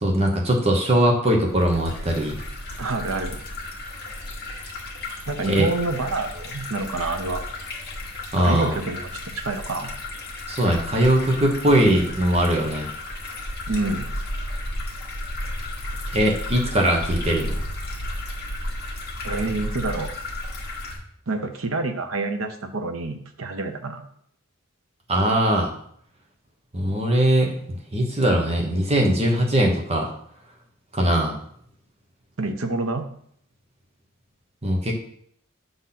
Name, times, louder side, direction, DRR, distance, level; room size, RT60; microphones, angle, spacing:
voice 1, 0.0-2.4 5.4-5.7 8.3-8.8 10.5-12.9 16.1-17.6 25.1-25.7 26.7-27.5 27.9-30.1 30.9-31.4 34.6-34.9, right 1 dB, 30° right, 0 dB, 1.1 m, -20 dB
sound 1, 1.5-21.0, left 1 dB, 50° left, 1.6 m, -33 dB
voice 2, 2.8-3.4 5.3-7.4 8.4-9.9 13.7-14.1 19.2-20.1 21.3-24.0 32.4-33.1, right 2 dB, 75° right, 6 dB, 0.9 m, -27 dB
7.0 x 4.0 x 5.9 m, 0.65 s
head